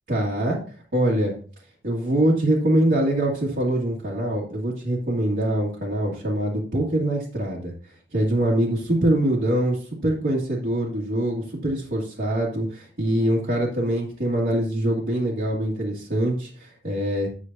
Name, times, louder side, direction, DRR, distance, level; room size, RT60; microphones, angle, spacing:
voice 1, 0.1-0.6 0.9-1.4 1.8-7.7 8.1-17.3, right 1 dB, 65° right, -6 dB, 2.1 m, -24 dB
9.4 x 8.3 x 2.7 m, 0.41 s
head